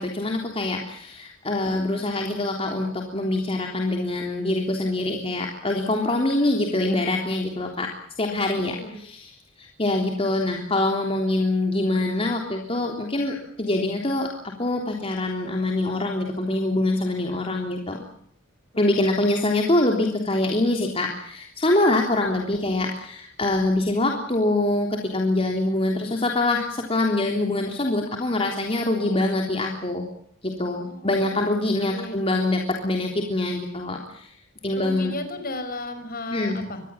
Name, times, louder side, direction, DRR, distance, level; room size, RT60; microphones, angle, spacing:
voice 1, 0.0-18.0 18.8-30.1 30.4-34.3 34.6-35.1 36.3-36.6, left 2 dB, 30° left, 1 dB, 3.4 m, -24 dB
voice 2, 8.6-8.9 18.7-19.1 30.8-32.2 34.7-36.8, left 2 dB, 45° left, 9 dB, 5.6 m, -36 dB
25.5 x 20.5 x 7.3 m, 0.67 s
head